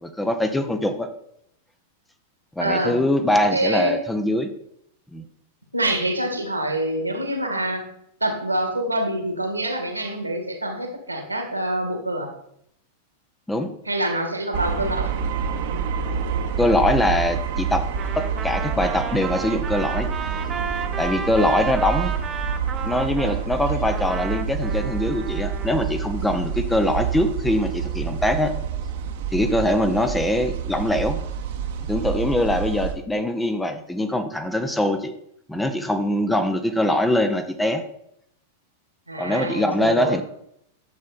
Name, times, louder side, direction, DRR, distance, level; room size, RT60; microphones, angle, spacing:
voice 1, 0.0-1.1 2.6-4.5 5.1-5.3 13.5-13.7 16.6-17.9 18.2-20.1 21.0-22.1 22.8-28.5 29.3-31.2 31.9-35.1 35.5-37.8 39.2-40.2, left 1 dB, 5° left, 7 dB, 1.0 m, -22 dB
voice 2, 2.6-3.0 3.5-4.0 5.7-7.8 8.2-12.3 13.9-15.1 39.1-40.2, right 1 dB, 85° right, 4 dB, 2.1 m, -25 dB
sound 1, 14.5-32.9, right 7 dB, 55° right, 1.2 m, -28 dB
Trumpet, 17.9-23.4 23.9-25.8, right 6 dB, 20° right, 1.1 m, -33 dB
10.5 x 7.6 x 4.3 m, 0.73 s
figure-of-eight pair, 90°, 0 cm